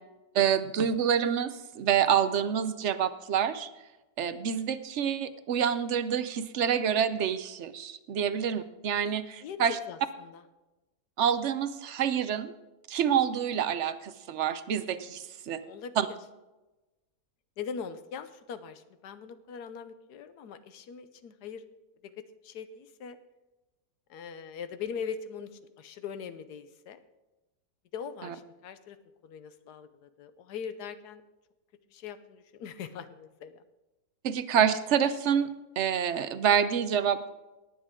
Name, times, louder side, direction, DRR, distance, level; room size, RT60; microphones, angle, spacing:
voice 1, 0.3-3.7 4.2-9.8 11.2-12.5 12.9-15.6 16.0-16.1 28.2-28.3 34.2-35.5 35.8-37.3, right 8 dB, 55° right, 12 dB, 0.9 m, -27 dB
voice 2, 9.9-10.4 15.6-15.9 17.6-21.6 22.0-22.1 22.4-23.2 24.1-27.0 27.9-29.0 29.2-31.2 31.9-33.6, left 7 dB, 85° left, 11 dB, 1.4 m, -41 dB
18.0 x 8.9 x 3.7 m, 1.1 s
omnidirectional pair, 1.7 m